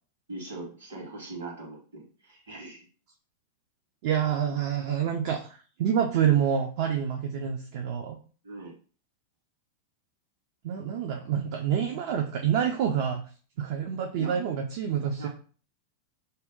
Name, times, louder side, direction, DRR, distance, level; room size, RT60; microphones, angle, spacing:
voice 1, 0.3-2.9 8.4-8.7 14.2-14.4 14.9-15.3, right 2 dB, 70° right, -1 dB, 1.2 m, -41 dB
voice 2, 4.0-8.2 10.6-13.2 13.6-15.3, right 8 dB, 50° right, 2 dB, 0.3 m, -27 dB
2.6 x 2.0 x 3.6 m, 0.39 s
figure-of-eight pair, 90°, 0 cm